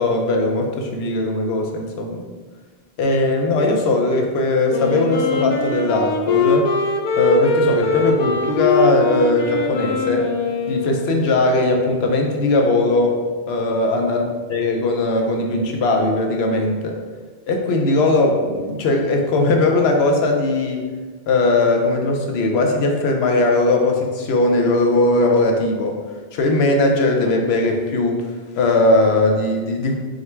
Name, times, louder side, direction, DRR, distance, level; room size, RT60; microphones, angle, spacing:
voice 1, 0.0-2.2 3.0-6.7 7.2-10.3 10.7-13.2 13.5-14.2 14.5-17.0 17.5-20.8 21.3-26.0 26.3-29.9, left 2 dB, 85° left, 2 dB, 0.9 m, -19 dB
Wind instrument woodwind instrument, 4.7-11.4, left 4 dB, 55° left, 0.5 m, -22 dB
3.7 x 2.1 x 4.3 m, 1.4 s
omnidirectional pair, 1.0 m